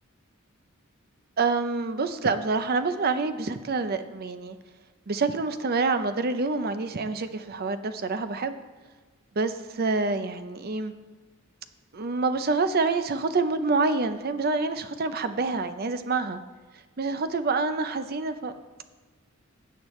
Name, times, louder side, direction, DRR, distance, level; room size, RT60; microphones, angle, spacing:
voice 1, 1.4-4.6 5.1-8.5 9.4-10.9 11.9-16.4 17.0-18.5, right 3 dB, 45° right, 10 dB, 0.6 m, -27 dB
16.0 x 8.2 x 3.2 m, 1.4 s
head